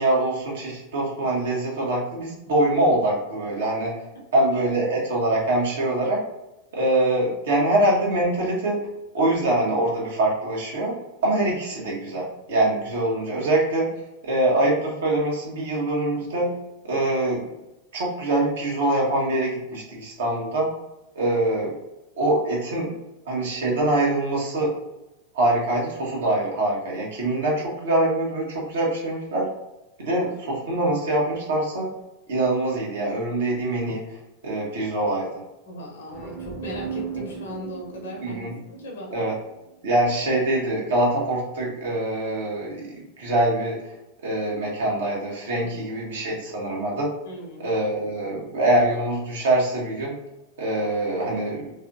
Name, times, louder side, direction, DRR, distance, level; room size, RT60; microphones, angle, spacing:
voice 1, 0.0-4.0 4.3-6.2 6.7-8.8 9.1-10.9 11.2-13.9 14.2-16.5 16.8-17.5 17.9-20.7 21.1-21.7 22.2-22.9 23.2-24.7 25.3-29.5 30.0-31.9 32.3-35.4 38.2-38.6 39.1-39.4 39.8-43.8 44.2-47.1 47.6-50.2 50.6-51.7, right 1 dB, 60° right, -3 dB, 1.2 m, -24 dB
voice 2, 35.6-38.4 38.7-39.1 45.6-45.9 47.2-47.7 48.4-48.5, equal, 65° left, 0 dB, 0.9 m, -37 dB
sound 1, 36.1-39.8, right 6 dB, 15° right, 0.9 m, -37 dB
3.1 x 2.9 x 2.5 m, 0.97 s
figure-of-eight pair, 90°, 0 cm